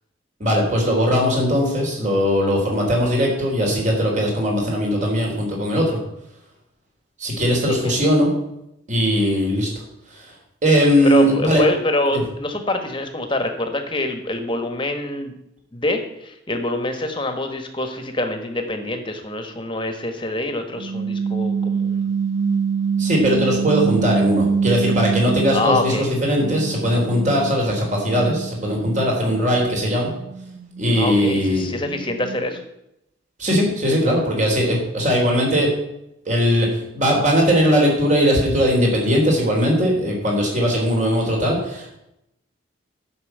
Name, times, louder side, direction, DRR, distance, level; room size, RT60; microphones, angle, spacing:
voice 1, 0.4-6.0 7.2-8.3 8.9-9.7 10.1-10.3 10.6-11.6 12.1-12.2 23.0-30.1 30.8-31.7 33.4-35.7 36.3-42.0, equal, 40° right, 0 dB, 3.5 m, -19 dB
voice 2, 7.7-8.1 11.0-15.3 15.7-22.1 25.5-26.0 30.9-32.6, left 1 dB, 25° left, 6 dB, 1.4 m, -25 dB
sound 1, 20.8-26.0 26.4-32.6, right 6 dB, 75° right, 1.0 m, -25 dB
11.0 x 6.1 x 8.1 m, 0.84 s
head